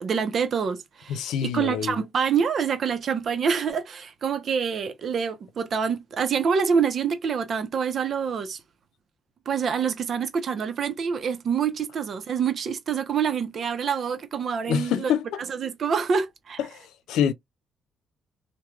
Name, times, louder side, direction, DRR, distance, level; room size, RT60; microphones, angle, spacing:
voice 1, 0.0-8.6 9.5-15.1 15.5-16.6, right 6 dB, 55° right, 0.6 m, -26 dB
voice 2, 1.1-2.0 14.7-15.4 16.6-17.3, left 9 dB, 90° left, 0.4 m, -26 dB
3.0 x 2.2 x 2.3 m
cardioid pair, 90°, 0 cm